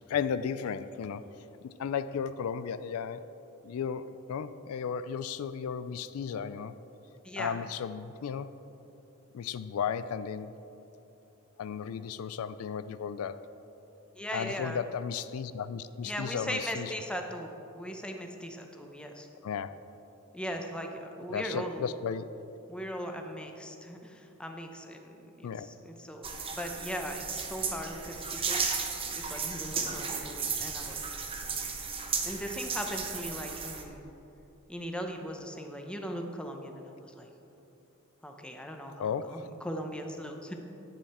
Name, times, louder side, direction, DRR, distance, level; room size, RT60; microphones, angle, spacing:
voice 1, 0.1-1.3 1.6-3.2 3.6-6.7 7.4-8.5 9.3-10.5 11.6-13.4 14.3-16.9 19.4-19.7 21.3-22.4 25.4-25.7 39.0-39.5, left 7 dB, 80° left, 13 dB, 0.3 m, -34 dB
voice 2, 7.2-7.6 14.2-14.8 16.0-19.3 20.3-22.0 22.7-28.6 29.2-31.0 31.4-31.5 32.2-34.0 34.7-37.3 38.2-40.5, equal, 5° left, 3 dB, 0.7 m, -39 dB
sound 1, 26.2-33.8, right 5 dB, 25° right, 0.8 m, -34 dB
10.5 x 8.7 x 4.3 m, 3.0 s
head